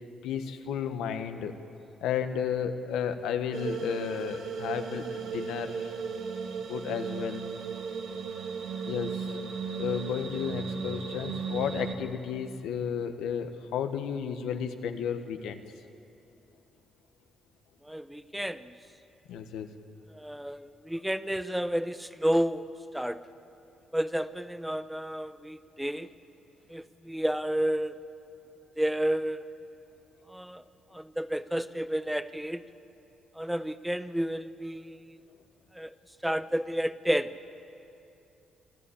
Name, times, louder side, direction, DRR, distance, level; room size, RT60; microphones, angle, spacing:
voice 1, 0.2-1.5 2.0-5.9 6.7-7.4 8.8-9.4 9.7-15.6 19.3-19.7, left 8 dB, 90° left, 7 dB, 1.2 m, -33 dB
sound 1, 3.5-12.0, right 5 dB, 85° right, 2.1 m, -36 dB
voice 2, 17.8-18.8 20.1-22.7 22.9-23.2 23.9-26.1 26.7-28.0 28.8-29.5 30.3-30.6 30.9-32.6 33.3-35.2 35.7-35.9 36.2-37.3, equal, 5° right, 13 dB, 0.7 m, -31 dB
26.0 x 13.0 x 8.6 m, 2.8 s
cardioid pair, 90°, 0 cm